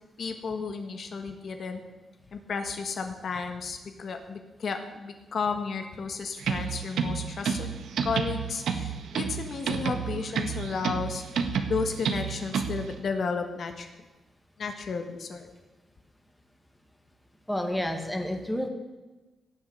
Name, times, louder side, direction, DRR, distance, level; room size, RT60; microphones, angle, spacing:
voice 1, 0.2-1.8 2.3-7.7 8.0-11.2 11.7-13.9 14.6-15.5, left 5 dB, 50° left, 6 dB, 1.4 m, -33 dB
sound 1, 6.4-12.9, right 6 dB, 80° right, 1.5 m, -30 dB
voice 2, 17.5-18.7, left 1 dB, 5° left, 4 dB, 1.8 m, -29 dB
17.5 x 7.3 x 8.1 m, 1.2 s
wide cardioid pair, 155°, 0 cm